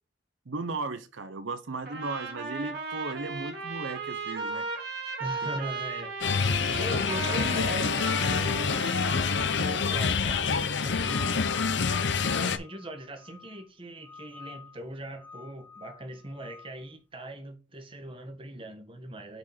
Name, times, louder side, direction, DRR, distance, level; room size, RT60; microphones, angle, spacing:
voice 1, 0.5-4.8 5.4-5.5, right 3 dB, 80° right, 0.7 m, -36 dB
Trumpet, 1.9-9.6, right 4 dB, 55° right, 2.2 m, -36 dB
voice 2, 5.2-6.3 6.8-9.0 9.3-11.5 12.2-19.4, right 1 dB, 30° right, 1.4 m, -40 dB
sound 1, 6.2-12.6, left 5 dB, 65° left, 0.7 m, -27 dB
sound 2, 10.8-13.7 14.0-14.8 15.2-16.7, left 5 dB, 10° left, 0.7 m, -45 dB
6.3 x 5.0 x 4.0 m
head